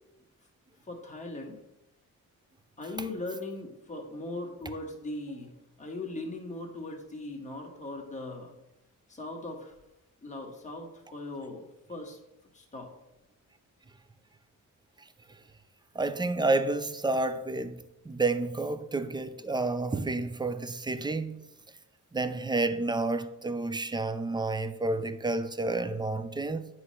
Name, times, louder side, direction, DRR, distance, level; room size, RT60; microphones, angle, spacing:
voice 1, 0.9-1.6 2.8-8.5 9.1-9.7 10.2-12.2 12.5-12.9, left 2 dB, 20° left, 1.6 m, -39 dB
voice 2, 15.9-21.4 22.1-26.7, right 2 dB, 15° right, 0.4 m, -30 dB
9.4 x 3.2 x 5.6 m
cardioid pair, 110°, 32 cm